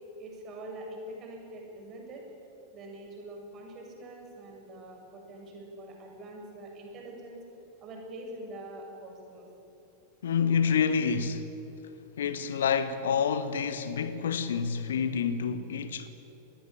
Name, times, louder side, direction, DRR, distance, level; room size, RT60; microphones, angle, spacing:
voice 1, 0.2-2.2 2.7-7.4 7.8-9.5, right 1 dB, 30° right, 7.7 m, -44 dB
voice 2, 10.2-11.5 12.2-16.1, left 6 dB, 65° left, 1.4 m, -28 dB
27.0 x 20.0 x 9.2 m
figure-of-eight pair, 90°, 0 cm